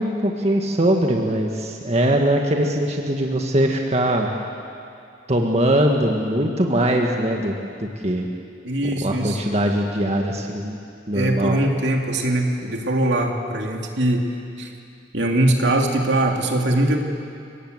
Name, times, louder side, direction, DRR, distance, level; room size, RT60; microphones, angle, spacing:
voice 1, 0.0-4.3 5.3-7.5 7.8-8.3 9.0-10.8 11.1-11.6, right 1 dB, 35° right, 1 dB, 1.7 m, -21 dB
voice 2, 8.6-9.4 11.1-14.3 14.6-14.7 15.1-17.0, right 1 dB, 75° right, 1 dB, 2.8 m, -21 dB
29.0 x 18.5 x 8.1 m, 2.5 s
head